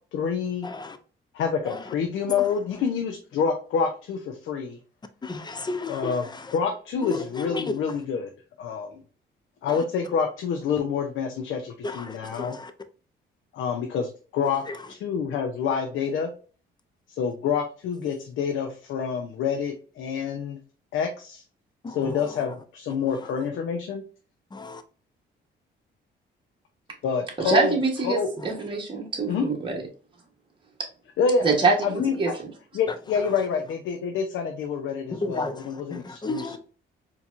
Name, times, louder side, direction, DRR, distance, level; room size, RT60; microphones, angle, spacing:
voice 1, 0.1-0.7 1.3-4.8 5.9-8.3 8.6-9.0 9.6-12.6 13.5-14.6 14.9-16.3 17.1-20.6 20.9-21.4 21.9-24.0 27.0-27.8 28.0-28.3 29.3-29.5 31.2-32.3 32.7-36.6, left 6 dB, 80° left, 0.6 m, -27 dB
voice 2, 5.2-6.1 7.5-7.6 11.8-11.9 12.4-12.5 24.5-24.8 35.2-35.5 35.9-36.6, left 3 dB, 20° left, 0.6 m, -32 dB
voice 3, 27.4-29.7 31.4-32.3, right 4 dB, 25° right, 1.2 m, -24 dB
4.4 x 2.8 x 2.5 m
cardioid pair, 90°, 20 cm